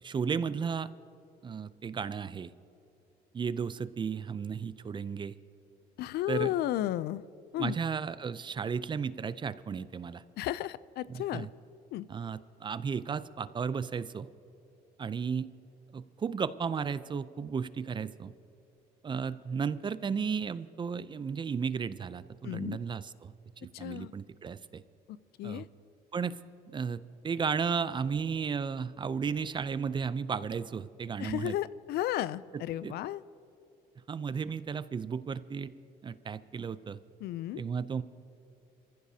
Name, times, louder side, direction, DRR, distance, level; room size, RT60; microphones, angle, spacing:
voice 1, 0.0-0.9 1.4-2.5 3.3-5.3 6.3-6.5 7.6-10.2 11.1-11.5 12.1-14.3 15.0-15.5 15.9-18.3 19.0-23.3 23.8-24.8 25.4-25.6 26.1-26.4 26.7-31.6 32.5-32.9 34.1-35.7 36.0-37.0 37.6-38.0, right 6 dB, 30° right, 15 dB, 0.5 m, -34 dB
voice 2, 6.0-7.2 7.5-7.7 10.4-11.5 11.9-12.1 22.4-22.8 23.7-24.1 25.4-25.6 31.2-33.2 37.2-37.6, left 13 dB, 70° left, 18 dB, 0.4 m, -33 dB
25.5 x 15.0 x 2.8 m, 2.8 s
cardioid pair, 110°, 17 cm